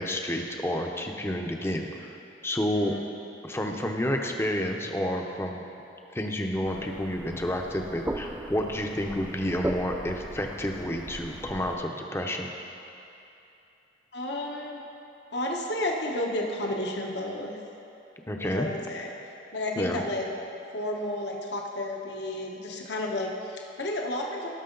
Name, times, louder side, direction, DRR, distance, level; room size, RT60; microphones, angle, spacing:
voice 1, 0.0-2.1 2.4-2.9 3.4-5.6 6.1-12.5 18.3-18.7 19.8-20.0, left 1 dB, 15° left, 2 dB, 0.7 m, -30 dB
voice 2, 2.8-3.1 14.1-14.8 15.3-17.5 18.3-19.1 19.5-20.3 20.7-24.5, left 1 dB, 65° left, 0 dB, 1.1 m, -32 dB
sound 1, 6.7-11.7, right 1 dB, 10° right, 0.4 m, -38 dB
18.0 x 6.2 x 3.9 m, 2.8 s
head